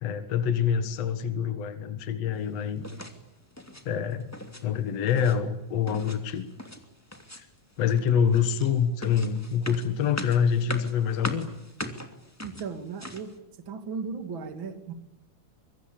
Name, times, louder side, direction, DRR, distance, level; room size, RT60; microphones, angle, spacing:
voice 1, 0.0-2.9 3.9-4.3 4.6-6.5 7.4-7.5 7.8-11.5, left 7 dB, 55° left, 10 dB, 2.5 m, -26 dB
sound 1, 2.8-3.2 3.5-3.9 4.2-4.6 4.9-5.4 5.9-6.8 7.1-7.6 7.9-13.3, left 1 dB, 5° left, 2.2 m, -40 dB
voice 2, 12.4-13.3 13.7-14.9, right 5 dB, 40° right, 7 dB, 3.0 m, -36 dB
25.5 x 23.5 x 8.7 m, 0.90 s
omnidirectional pair, 3.7 m